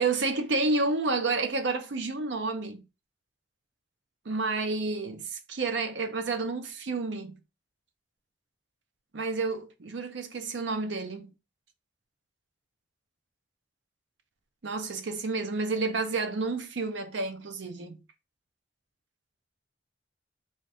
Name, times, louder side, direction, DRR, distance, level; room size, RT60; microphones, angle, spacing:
voice 1, 0.0-2.8 4.3-7.4 9.1-11.3 14.6-18.0, right 3 dB, 90° right, 0.6 m, -30 dB
4.0 x 2.5 x 3.3 m
head